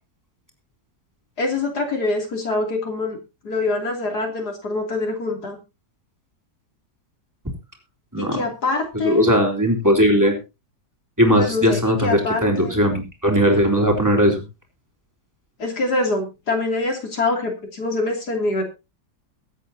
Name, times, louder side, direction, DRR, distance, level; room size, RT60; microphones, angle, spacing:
voice 1, 1.4-3.2 3.4-5.6 8.2-9.2 11.4-12.8 15.6-18.6, left 2 dB, 60° left, 2 dB, 3.4 m, -24 dB
voice 2, 9.0-10.4 11.2-14.4, equal, 10° right, 2 dB, 3.8 m, -18 dB
23.0 x 8.5 x 2.8 m, 0.27 s
omnidirectional pair, 1.9 m